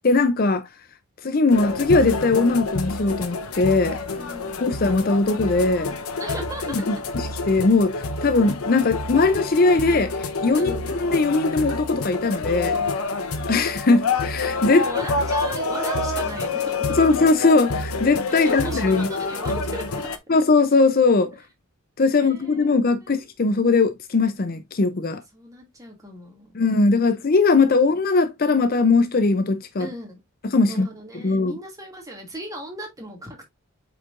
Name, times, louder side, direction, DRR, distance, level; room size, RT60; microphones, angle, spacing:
voice 1, 0.0-0.7 1.2-4.0 4.6-6.0 6.9-10.7 11.0-12.8 13.5-14.9 17.0-19.1 20.3-21.3 22.0-25.2 26.5-29.9 30.4-30.9 31.2-31.5, left 3 dB, 40° left, 0.5 m, -20 dB
sound 1, 1.5-20.2, left 3 dB, 90° left, 0.9 m, -28 dB
voice 2, 4.1-4.7 6.2-6.9 10.5-10.9 14.8-17.0 18.3-20.1 21.3-21.4 22.1-23.2 25.1-26.6 29.8-30.2 30.7-33.4, right 1 dB, 15° right, 2.3 m, -37 dB
8.2 x 4.6 x 2.5 m
head